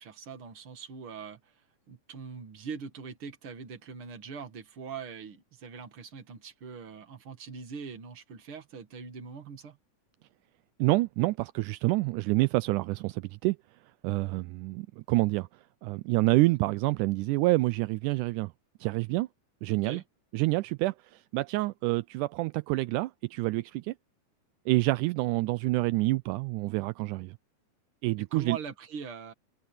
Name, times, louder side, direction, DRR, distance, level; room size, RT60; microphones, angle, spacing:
voice 1, 0.0-1.5 1.9-9.8 19.7-20.0 28.3-29.3, right 6 dB, 45° right, 2.6 m, -42 dB
voice 2, 10.8-13.6 14.0-15.5 15.8-18.5 18.8-19.3 19.6-20.0 20.3-23.9 24.7-27.4 28.0-28.6, right 20 dB, 80° right, 2.0 m, -27 dB
omnidirectional pair, 3.6 m